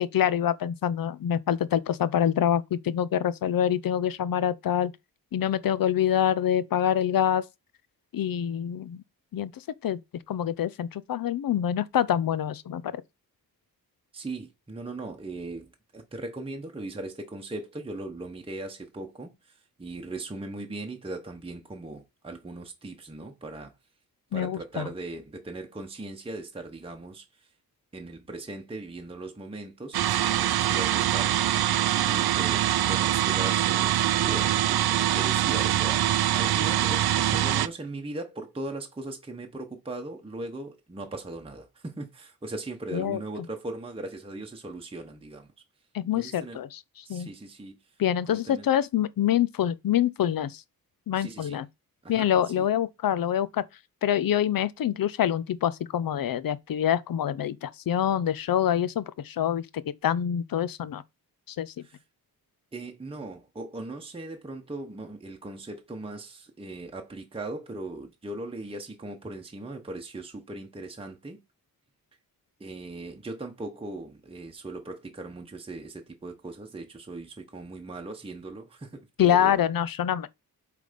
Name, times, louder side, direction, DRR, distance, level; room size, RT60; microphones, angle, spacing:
voice 1, 0.0-4.9 5.3-7.4 8.1-9.0 9.3-9.5 9.8-10.0 10.3-13.0 24.3-24.9 42.9-43.2 45.9-46.8 47.1-47.3 48.0-50.6 51.1-51.7 52.1-53.6 54.0-59.7 60.0-61.0 61.5-61.9 79.2-80.3, left 10 dB, 65° left, 0.6 m, -26 dB
voice 2, 14.1-23.7 24.3-27.5 27.9-45.5 46.1-46.6 47.1-47.8 48.3-48.7 51.2-51.6 52.0-52.7 61.8-62.0 62.7-71.4 72.6-79.7, right 2 dB, 15° right, 0.9 m, -39 dB
sound 1, 29.9-37.7, right 12 dB, 80° right, 0.5 m, -24 dB
7.9 x 3.4 x 5.1 m
wide cardioid pair, 170°, 37 cm